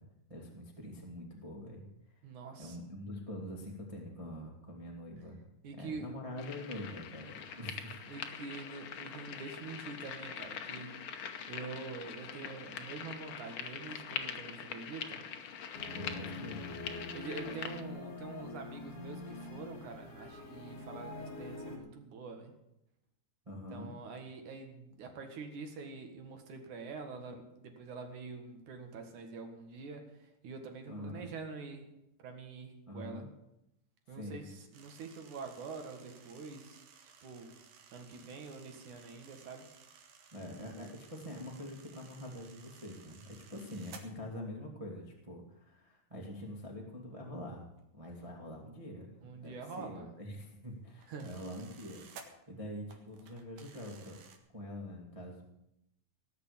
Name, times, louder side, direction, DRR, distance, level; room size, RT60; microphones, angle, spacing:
voice 1, 0.3-1.8 2.6-5.4 5.7-8.0 15.9-16.7 23.4-23.9 30.9-31.3 32.8-33.3 34.1-34.4 40.3-47.7 47.9-49.1 49.3-54.2 54.5-55.4, left 1 dB, 10° right, -1 dB, 1.7 m, -45 dB
voice 2, 2.2-2.8 5.6-6.1 8.1-10.9 11.5-15.2 17.1-22.5 23.7-31.9 32.2-33.2 34.1-37.5 37.9-39.7 49.2-50.1 51.1-51.3, right 4 dB, 65° right, 5 dB, 3.1 m, -46 dB
sound 1, 6.4-17.8, left 7 dB, 70° left, 1.3 m, -43 dB
sound 2, 15.7-21.8, left 2 dB, 45° left, 3.3 m, -45 dB
sound 3, 34.7-44.0 47.8-47.9 48.2-48.4 50.1-52.3 52.9-54.4, right 6 dB, 85° right, 3.4 m, -57 dB
19.0 x 6.8 x 8.5 m, 0.82 s
omnidirectional pair, 4.0 m